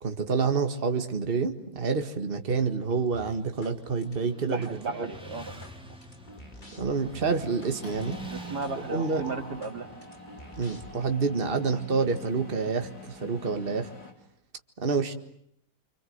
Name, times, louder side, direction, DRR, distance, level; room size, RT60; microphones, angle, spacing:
voice 1, 0.0-4.7 4.9-5.1 6.8-8.2 8.9-9.2 10.6-13.9 14.8-15.1, right 4 dB, 35° right, 6 dB, 2.0 m, -28 dB
Motorcycle, 2.4-12.2, right 1 dB, 5° right, 3.0 m, -48 dB
sound 1, 3.1-3.8 4.0-4.8 5.1-7.8 8.0-8.2 8.6-8.8 9.1-11.1, left 1 dB, 30° left, 2.9 m, -49 dB
voice 2, 4.4-5.5 8.3-9.9, right 4 dB, 90° right, 5 dB, 3.1 m, -35 dB
Mechanisms, 4.5-5.1 5.5-5.7 5.9-14.1, left 1 dB, 65° left, 5.3 m, -46 dB
28.0 x 26.5 x 8.0 m, 0.71 s
omnidirectional pair, 1.7 m